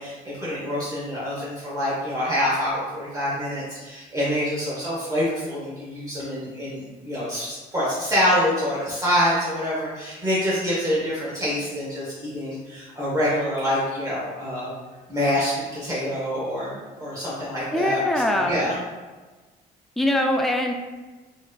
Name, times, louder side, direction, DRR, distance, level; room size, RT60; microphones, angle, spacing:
voice 1, 0.0-14.7 15.1-18.0 18.3-18.8, equal, 20° right, -9 dB, 0.9 m, -26 dB
voice 2, 17.7-18.6 20.0-20.7, left 1 dB, ahead, 2 dB, 0.3 m, -22 dB
4.5 x 2.5 x 2.2 m, 1.3 s
cardioid pair, 110°, 17 cm